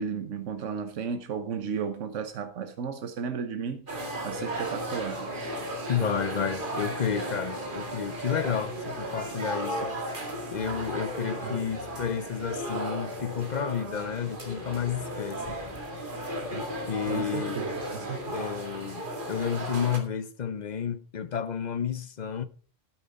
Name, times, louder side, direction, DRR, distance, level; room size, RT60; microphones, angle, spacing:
voice 1, 0.0-3.9 4.2-5.3 11.4-11.7 17.1-18.2, right 6 dB, 75° right, 1.3 m, -34 dB
sound 1, 3.9-20.0, right 1 dB, 40° right, 2.3 m, -35 dB
voice 2, 5.9-9.9 10.5-15.6 16.5-17.6 18.3-22.5, left 7 dB, 45° left, 0.7 m, -31 dB
12.5 x 8.8 x 4.2 m
omnidirectional pair, 1.3 m